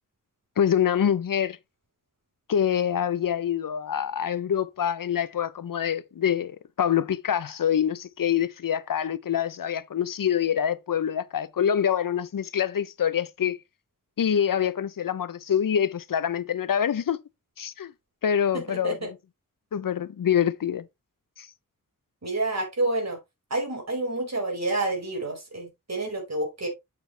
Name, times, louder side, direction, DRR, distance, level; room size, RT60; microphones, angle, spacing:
voice 1, 0.6-1.6 2.5-13.6 14.2-17.2 17.6-17.9 18.2-19.1 19.7-20.9 21.4-21.5, left 9 dB, 90° left, 0.7 m, -25 dB
voice 2, 18.5-19.1 22.2-23.2 23.5-26.7, right 2 dB, 55° right, 4.7 m, -29 dB
7.9 x 7.0 x 3.2 m
wide cardioid pair, 70°, 32 cm